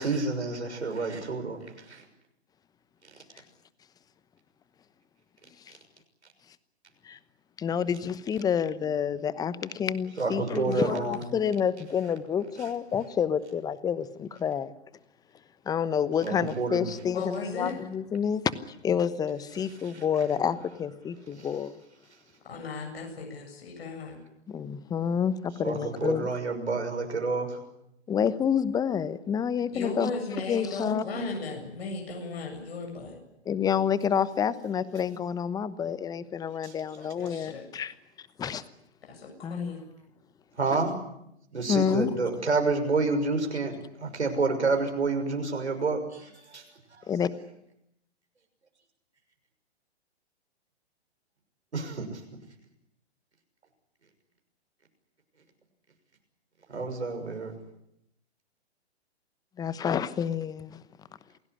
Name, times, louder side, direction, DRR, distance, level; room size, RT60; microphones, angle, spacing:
voice 1, 0.0-2.0 10.2-11.3 16.2-16.9 21.4-21.5 25.6-27.6 36.6-36.7 40.6-40.9 41.5-46.6 47.0-47.1 51.7-52.2 56.7-57.5, right 3 dB, 80° right, 5 dB, 6.3 m, -29 dB
voice 2, 7.6-14.7 15.6-21.8 24.5-26.3 28.1-30.1 30.5-31.0 33.4-38.6 39.4-39.7 41.7-42.1 47.1-47.3 59.6-60.8, left 8 dB, 10° left, 17 dB, 1.0 m, -29 dB
voice 3, 17.1-17.7 22.5-24.2 29.7-33.2 37.0-37.7 39.0-39.8, left 3 dB, 65° left, 2 dB, 7.7 m, -36 dB
28.0 x 17.5 x 10.0 m, 0.81 s
figure-of-eight pair, 120°, 33 cm